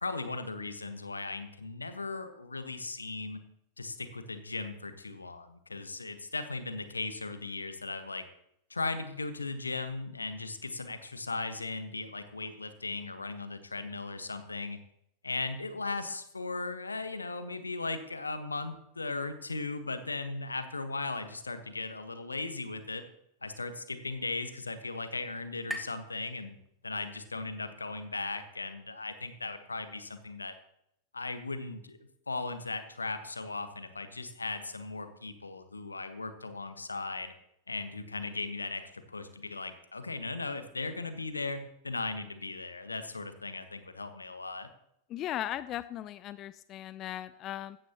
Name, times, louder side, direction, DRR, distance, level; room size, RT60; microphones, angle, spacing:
voice 1, 0.0-3.4 3.8-8.2 8.7-14.8 15.2-23.0 23.4-26.6 26.8-30.5 31.1-37.3 37.7-44.7, left 3 dB, 80° left, 10 dB, 1.3 m, -37 dB
sound 1, 23.3-27.1, equal, ahead, 1.5 m, -47 dB
voice 2, 45.1-47.8, left 12 dB, 35° left, 15 dB, 0.4 m, -37 dB
16.0 x 14.0 x 2.9 m, 0.76 s
figure-of-eight pair, 90°, 0 cm